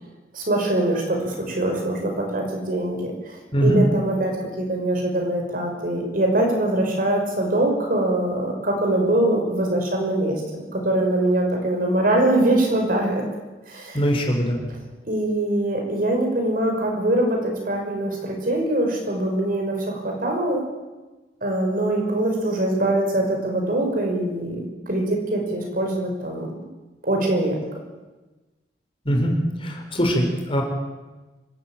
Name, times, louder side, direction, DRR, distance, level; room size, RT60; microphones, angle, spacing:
voice 1, 0.3-3.1 3.6-4.3 4.6-10.4 10.7-13.2 13.7-14.0 15.1-20.6 21.4-26.5 27.0-27.6, right 1 dB, 55° right, 2 dB, 5.8 m, -23 dB
voice 2, 3.5-3.8 13.9-14.6 29.0-29.4 29.6-30.6, equal, 30° left, 2 dB, 4.7 m, -21 dB
25.5 x 14.5 x 9.0 m, 1.2 s
head